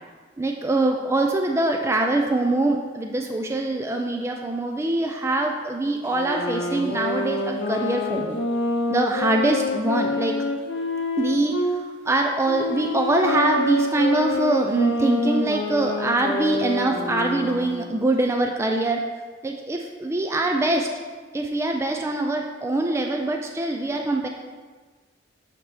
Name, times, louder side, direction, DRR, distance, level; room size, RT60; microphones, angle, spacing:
voice 1, 0.4-8.4 8.9-10.4 11.2-11.5 12.1-19.0 19.4-20.9 21.3-24.3, right 2 dB, 15° right, 2 dB, 0.3 m, -23 dB
sound 1, 6.1-11.8 12.4-17.8, left 2 dB, 70° left, 0.6 m, -27 dB
7.2 x 4.3 x 3.3 m, 1.4 s
head